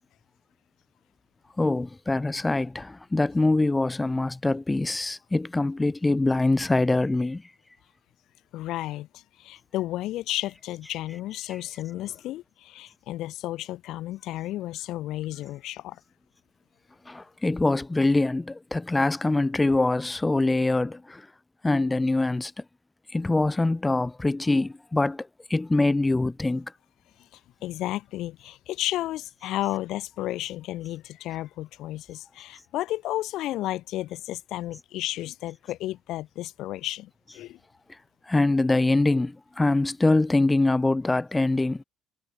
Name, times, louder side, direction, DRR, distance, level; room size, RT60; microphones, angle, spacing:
voice 1, 1.6-7.4 17.1-21.3 21.6-22.5 23.1-26.7 38.3-41.8, left 2 dB, 15° left, 0.7 m, -24 dB
voice 2, 8.5-16.0 27.2-37.6, left 15 dB, 65° left, 2.8 m, -33 dB
hypercardioid pair, 60°, 0 cm